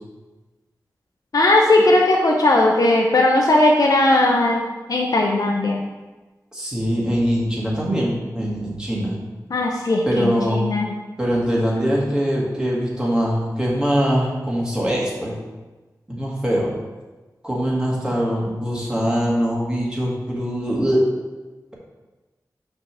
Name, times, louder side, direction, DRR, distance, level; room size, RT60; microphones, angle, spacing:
voice 1, 1.3-4.6 4.9-5.8 9.5-11.0, left 2 dB, 65° left, 0 dB, 0.7 m, -17 dB
voice 2, 6.5-9.2 10.1-10.6 11.2-15.3 16.1-16.7 17.4-21.0, equal, 10° right, -5 dB, 2.1 m, -22 dB
6.7 x 3.6 x 6.1 m, 1.2 s
wide cardioid pair, 85°, 7 cm